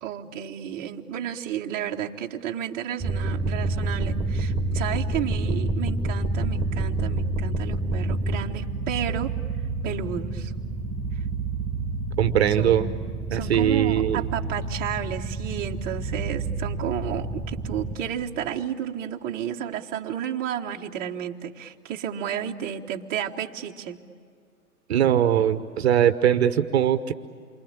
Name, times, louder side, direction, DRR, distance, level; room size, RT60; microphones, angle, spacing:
voice 1, 0.0-9.3 9.8-10.5 11.1-11.2 12.6-12.8 13.3-24.0, right 9 dB, 20° right, 1 dB, 1.2 m, -32 dB
sound 1, 3.0-17.9, right 2 dB, 5° right, 2.4 m, -28 dB
voice 2, 12.2-12.9 13.3-14.2 24.9-27.1, right 10 dB, 45° right, 11 dB, 1.1 m, -21 dB
28.0 x 24.0 x 8.7 m, 2.1 s
figure-of-eight pair, 115°, 45 cm